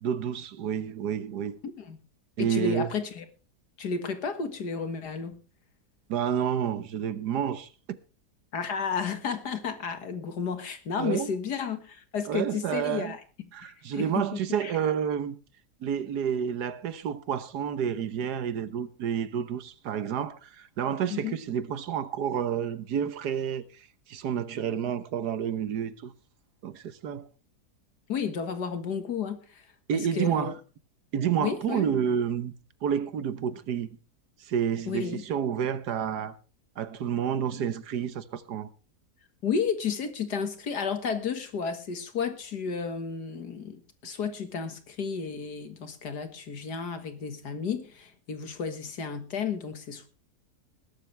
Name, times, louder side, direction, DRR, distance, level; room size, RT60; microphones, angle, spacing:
voice 1, 0.0-1.6 2.4-2.9 6.1-8.0 11.0-11.3 12.3-13.2 13.5-15.4 15.8-26.1 26.6-27.3 29.9-30.5 31.1-32.5 32.8-34.0 34.4-36.3 36.8-38.7, right 8 dB, 80° right, 1.6 m, -29 dB
voice 2, 1.6-2.0 2.4-3.2 3.8-5.4 8.5-13.2 13.6-14.7 21.1-21.4 28.1-29.6 29.9-30.5 31.4-31.9 34.9-35.2 39.4-50.1, left 6 dB, 80° left, 2.3 m, -32 dB
20.0 x 12.0 x 3.4 m
omnidirectional pair, 1.7 m